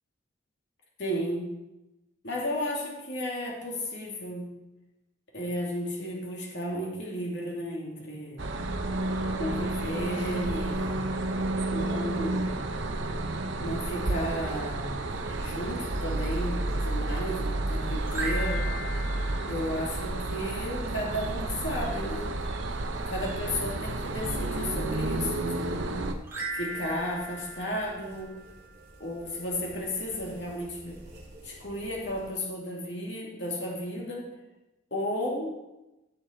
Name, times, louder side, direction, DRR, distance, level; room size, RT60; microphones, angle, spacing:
voice 1, 1.0-1.5 2.2-4.5 5.3-8.4 9.3-11.0 11.7-12.6 13.6-15.0 15.3-18.7 19.5-22.3 23.1-26.0 26.5-28.3 29.0-31.0 31.4-34.3 34.9-35.6, equal, 60° left, -2 dB, 2.7 m, -33 dB
sound 1, 8.4-26.1, right 2 dB, 65° right, 1.0 m, -31 dB
sound 2, 15.0-32.3, right 1 dB, 40° right, 3.2 m, -50 dB
sound 3, 18.1-20.5 26.2-28.9, right 1 dB, 10° right, 2.5 m, -38 dB
16.0 x 6.9 x 4.6 m, 0.99 s
head